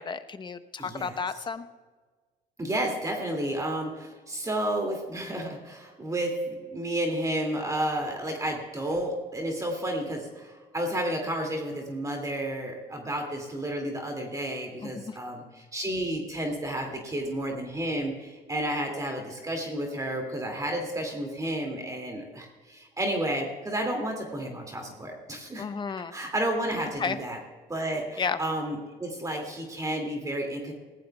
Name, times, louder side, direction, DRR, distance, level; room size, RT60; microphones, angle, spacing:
voice 1, 0.0-1.6 14.8-15.2 25.6-26.1 27.0-27.2 28.2-28.4, left 5 dB, 25° left, 10 dB, 0.8 m, -32 dB
voice 2, 0.8-1.2 2.6-25.7 26.1-27.4 27.7-30.7, right 1 dB, 20° right, 2 dB, 2.4 m, -31 dB
20.0 x 16.0 x 2.3 m, 1.4 s
cardioid pair, 110°, 17 cm